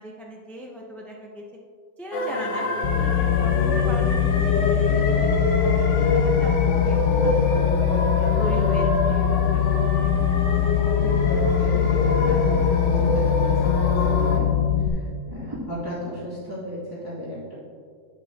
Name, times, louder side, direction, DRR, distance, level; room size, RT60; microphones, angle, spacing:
voice 1, 0.0-1.4 2.0-6.5 6.8-8.0 8.4-10.1 12.2-12.4, right 1 dB, ahead, -2 dB, 0.5 m, -39 dB
sound 1, 2.1-14.4, left 1 dB, 65° left, 1.3 m, -26 dB
sound 2, 2.8-14.9, left 10 dB, 85° left, 1.3 m, -22 dB
voice 2, 10.9-14.5 15.0-17.6, equal, 15° right, -11 dB, 2.4 m, -34 dB
11.0 x 8.2 x 2.8 m, 2.1 s
omnidirectional pair, 1.4 m